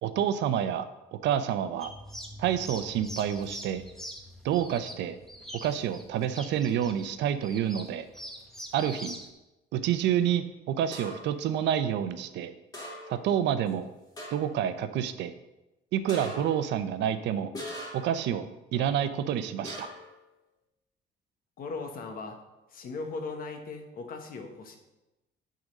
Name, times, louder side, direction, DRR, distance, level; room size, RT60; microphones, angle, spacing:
voice 1, 0.0-0.9 1.2-1.9 2.4-3.8 4.4-5.2 5.6-8.1 8.7-9.2 9.7-12.5 13.1-13.9 14.3-15.3 15.9-17.5 17.9-18.4 18.7-19.9, right 9 dB, 75° right, 11 dB, 0.7 m, -28 dB
sound 1, 1.8-9.3, equal, ahead, 0.9 m, -44 dB
sound 2, 10.9-11.4 12.7-13.3 13.7-13.8 14.2-14.6 16.1-16.7 17.5-18.2 19.6-20.2, equal, 20° left, 2.2 m, -41 dB
voice 2, 21.6-22.4 22.7-24.8, left 3 dB, 50° left, 4 dB, 1.3 m, -38 dB
9.2 x 3.9 x 6.5 m, 0.99 s
cardioid pair, 145°, 19 cm